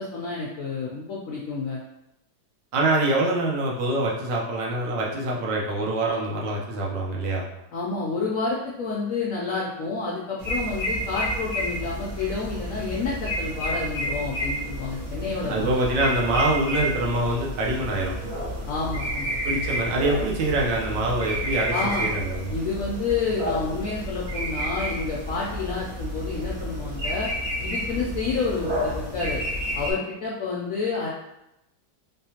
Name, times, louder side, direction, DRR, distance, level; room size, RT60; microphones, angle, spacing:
voice 1, 0.0-1.8 7.7-15.7 18.7-19.3 21.7-22.1 22.5-27.3 27.6-29.4 29.8-31.1, left 4 dB, 75° left, -4 dB, 0.7 m, -29 dB
voice 2, 2.7-7.5 15.5-18.1 19.4-22.5, right 2 dB, 75° right, -3 dB, 1.4 m, -25 dB
sound 1, 10.4-29.9, equal, 45° right, 1.0 m, -30 dB
3.7 x 3.3 x 2.8 m, 0.88 s
omnidirectional pair, 2.0 m